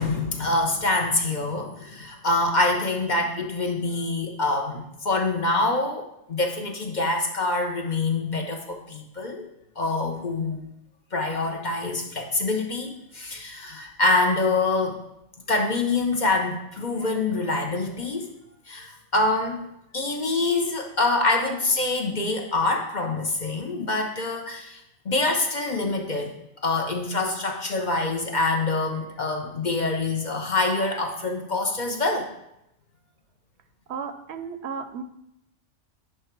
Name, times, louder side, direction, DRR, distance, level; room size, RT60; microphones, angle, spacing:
voice 1, 0.0-9.5 9.8-10.6 11.1-15.0 15.5-18.3 18.7-19.6 19.9-26.3 26.6-32.3, left 2 dB, 45° left, 2 dB, 0.9 m, -25 dB
voice 2, 33.9-35.0, right 6 dB, 70° right, 9 dB, 0.8 m, -34 dB
10.0 x 3.5 x 4.5 m, 0.80 s
omnidirectional pair, 1.2 m